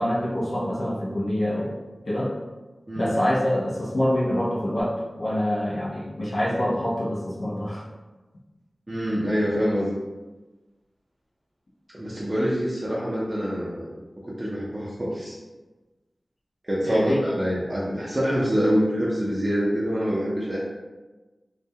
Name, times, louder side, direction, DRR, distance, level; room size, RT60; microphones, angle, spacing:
voice 1, 0.0-1.7 2.1-2.3 2.9-4.9 5.2-7.8 16.8-17.2, left 1 dB, 70° left, -7 dB, 0.7 m, -25 dB
voice 2, 8.9-10.0 11.9-14.0 14.2-15.4 16.6-20.6, equal, 20° right, -7 dB, 0.5 m, -25 dB
2.3 x 2.1 x 2.7 m, 1.2 s
wide cardioid pair, 70°, 0 cm